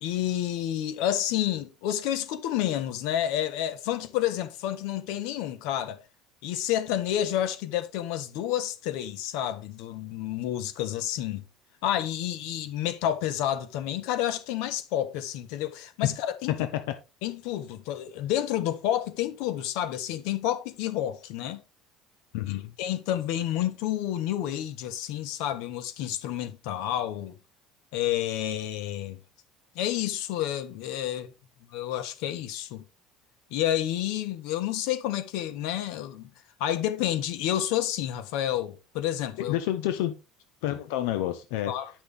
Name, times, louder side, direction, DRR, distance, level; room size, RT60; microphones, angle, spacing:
voice 1, 0.0-6.0 6.4-11.4 11.8-16.5 17.2-21.6 22.8-27.4 27.9-29.2 29.7-31.3 31.7-32.8 33.5-36.3 36.6-39.6 41.7-41.9, left 12 dB, 70° left, 1.3 m, -29 dB
voice 2, 16.5-16.9 22.3-22.7 39.5-40.2 40.6-41.7, left 13 dB, 90° left, 1.1 m, -28 dB
10.5 x 6.1 x 3.5 m
cardioid pair, 155°, 0 cm